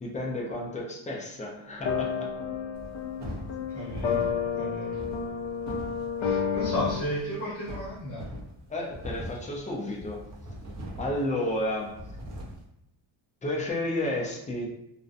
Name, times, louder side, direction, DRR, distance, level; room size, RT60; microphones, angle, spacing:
voice 1, 0.0-2.1 8.7-10.2 11.0-11.9 13.4-14.7, left 1 dB, 15° left, -1 dB, 0.4 m, -31 dB
sound 1, 1.6-1.7 1.8-7.0, left 7 dB, 70° left, 0.6 m, -30 dB
sound 2, 2.7-12.6, equal, 35° right, 0.6 m, -41 dB
voice 2, 3.7-4.2 4.6-5.0 6.2-8.3, equal, 45° left, -8 dB, 1.0 m, -34 dB
2.6 x 2.1 x 2.4 m, 0.85 s
cardioid pair, 150°, 46 cm